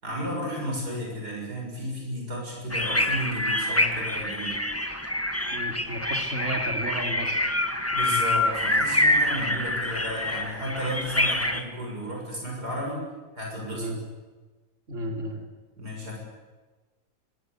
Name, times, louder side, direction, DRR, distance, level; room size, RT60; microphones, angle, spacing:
voice 1, 0.0-4.6 7.9-13.0 13.4-13.9 15.8-16.2, equal, 75° right, -1 dB, 7.4 m, -33 dB
sound 1, 2.7-11.6, left 1 dB, 10° left, 1.6 m, -26 dB
voice 2, 5.5-7.5 13.7-14.0 14.9-15.4, right 1 dB, 50° right, 2 dB, 3.5 m, -33 dB
27.5 x 23.0 x 8.2 m, 1.3 s
omnidirectional pair, 1.7 m